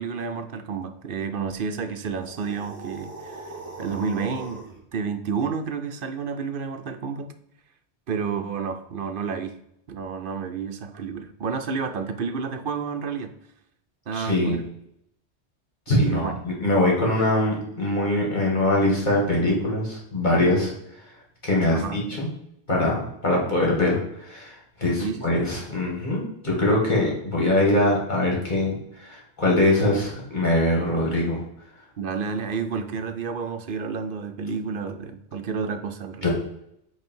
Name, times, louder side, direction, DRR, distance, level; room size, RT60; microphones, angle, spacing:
voice 1, 0.0-3.5 3.8-4.6 4.9-7.3 8.1-9.5 9.9-13.3 14.1-14.6 15.9-16.3 21.7-22.1 25.0-25.3 32.0-36.3, right 5 dB, 55° right, 7 dB, 0.8 m, -30 dB
sound 1, 2.2-4.8, right 3 dB, 35° right, 1.5 m, -40 dB
voice 2, 14.1-14.6 15.9-20.7 21.4-22.3 22.7-28.7 29.0-31.4 36.2-36.3, left 1 dB, 45° left, -3 dB, 2.3 m, -23 dB
8.7 x 3.3 x 4.6 m, 0.76 s
omnidirectional pair, 1.1 m